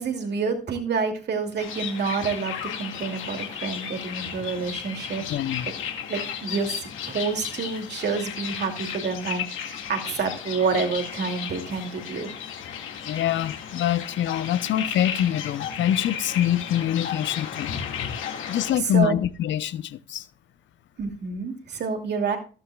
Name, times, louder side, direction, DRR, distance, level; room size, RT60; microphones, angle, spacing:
voice 1, 0.0-5.2 6.1-12.3 18.3-19.1 21.0-22.4, right 5 dB, 60° right, 2.7 m, -28 dB
sound 1, 1.6-18.7, left 8 dB, 85° left, 2.1 m, -34 dB
voice 2, 5.3-5.7 13.0-17.7 18.5-20.2, left 11 dB, 70° left, 0.7 m, -25 dB
14.0 x 12.5 x 2.4 m
cardioid pair, 90°, 20 cm